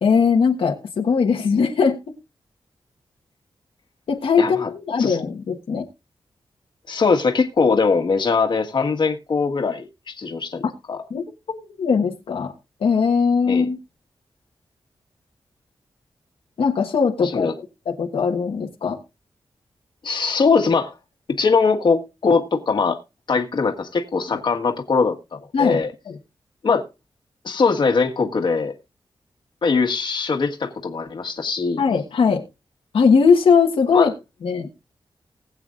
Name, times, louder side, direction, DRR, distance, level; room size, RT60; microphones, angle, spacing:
voice 1, 0.0-2.0 4.1-5.8 11.1-12.5 12.8-13.8 16.6-17.5 17.9-19.0 24.3-24.4 25.5-25.8 31.8-32.4 32.9-34.1 34.4-34.7, left 5 dB, 85° left, 1.4 m, -19 dB
voice 2, 4.4-4.7 5.0-5.2 6.9-11.0 13.5-13.7 17.2-17.5 20.0-20.9 21.3-23.0 23.3-25.9 26.6-26.9 27.4-28.7 29.6-31.8 33.9-34.1, left 4 dB, 55° left, 1.6 m, -21 dB
20.0 x 8.1 x 2.5 m
wide cardioid pair, 140°, 9 cm